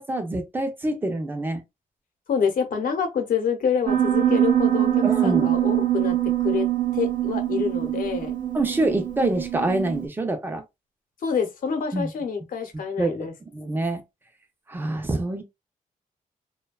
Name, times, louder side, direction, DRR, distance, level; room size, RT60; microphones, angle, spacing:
voice 1, 0.0-1.6 5.0-5.5 8.5-10.6 11.9-12.1 13.0-13.1 13.5-14.0 14.7-15.4, right 2 dB, 15° right, 0.5 m, -26 dB
voice 2, 2.3-6.7 6.9-8.4 11.2-13.3, left 6 dB, 75° left, 0.8 m, -27 dB
Piano, 3.9-10.1, right 12 dB, 65° right, 0.6 m, -23 dB
2.6 x 2.2 x 2.3 m
wide cardioid pair, 150°, 14 cm